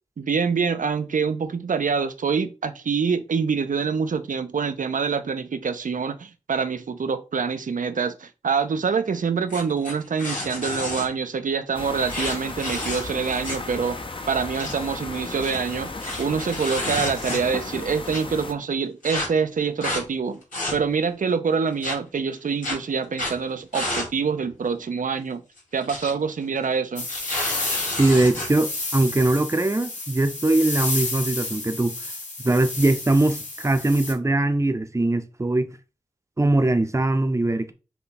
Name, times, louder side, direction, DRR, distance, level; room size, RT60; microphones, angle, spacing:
voice 1, 0.2-14.0 14.3-15.9 16.2-20.4 20.7-25.4 25.7-27.1, right 5 dB, 80° right, 0.5 m, -25 dB
sound 1, 9.5-11.1 12.1-13.7 14.0-14.1 14.4-14.7 15.3-17.7 18.1-18.2 19.0-19.3 19.8-20.0 20.4-21.1 21.8-21.9 22.6-22.7 23.1-23.4 23.7-24.1 24.4-24.5 25.6-26.1 26.4-26.6 27.0-28.5, left 1 dB, 85° left, 2.2 m, -30 dB
sound 2, 11.7-18.5, left 3 dB, 40° left, 0.7 m, -35 dB
sound 3, 27.0-34.1, left 2 dB, 70° left, 1.5 m, -31 dB
voice 2, 28.0-31.9 32.4-35.7 36.4-37.7, right 2 dB, 20° right, 0.6 m, -21 dB
5.7 x 2.3 x 4.0 m
wide cardioid pair, 50°, 13 cm